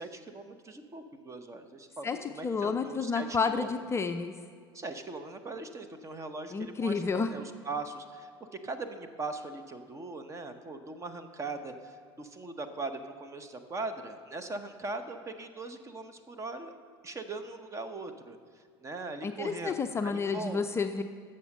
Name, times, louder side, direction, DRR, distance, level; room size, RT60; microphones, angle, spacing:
voice 1, 0.0-3.7 4.7-8.3 8.6-16.7 17.0-19.8 20.0-20.6, right 3 dB, 20° right, 9 dB, 0.9 m, -40 dB
voice 2, 2.0-4.3 6.5-7.3 19.2-21.0, left 5 dB, 20° left, 7 dB, 0.5 m, -30 dB
15.0 x 6.6 x 5.4 m, 2.1 s
figure-of-eight pair, 70°, 13 cm